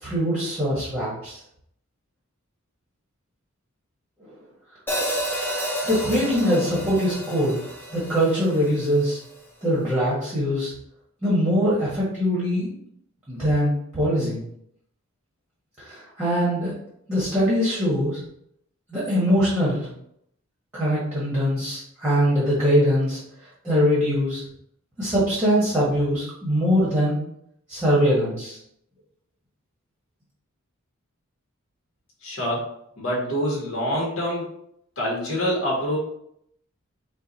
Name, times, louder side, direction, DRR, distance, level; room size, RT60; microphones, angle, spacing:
voice 1, 0.0-1.4 5.8-7.6 7.9-9.2 9.6-10.7 11.2-12.7 13.3-14.4 15.8-16.7 17.1-18.2 18.9-19.9 20.7-23.2 23.6-24.4 25.0-27.2 27.7-28.6, equal, 10° right, -7 dB, 1.3 m, -22 dB
Hi-hat, 4.9-9.1, equal, 10° left, 0.6 m, -30 dB
voice 2, 32.2-32.6 33.0-34.5 35.0-36.0, equal, 60° left, -4 dB, 1.5 m, -25 dB
4.5 x 2.6 x 4.0 m, 0.72 s
head